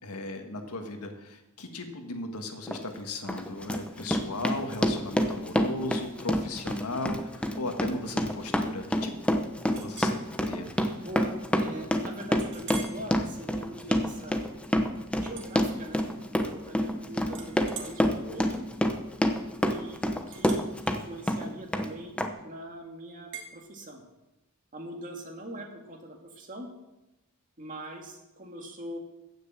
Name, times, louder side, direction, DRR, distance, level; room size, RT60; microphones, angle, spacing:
voice 1, 0.0-9.1 9.6-10.7, left 2 dB, 85° left, 5 dB, 1.8 m, -36 dB
Run, 2.7-2.8 3.3-21.0 21.3-21.9 22.2-22.3, equal, 5° left, 0.9 m, -27 dB
Chink clink, 9.7-10.2 10.7-10.9 11.4-11.5 12.4-13.0 13.5-13.8 15.3-16.2 16.6-17.0 17.3-22.4 23.3-23.5, right 6 dB, 55° right, 1.9 m, -45 dB
voice 2, 11.0-14.4 15.2-18.6 19.7-20.6 20.9-24.0 24.7-26.7 27.6-29.0, right 1 dB, 35° right, 2 dB, 2.3 m, -42 dB
15.5 x 6.5 x 7.5 m, 0.98 s
head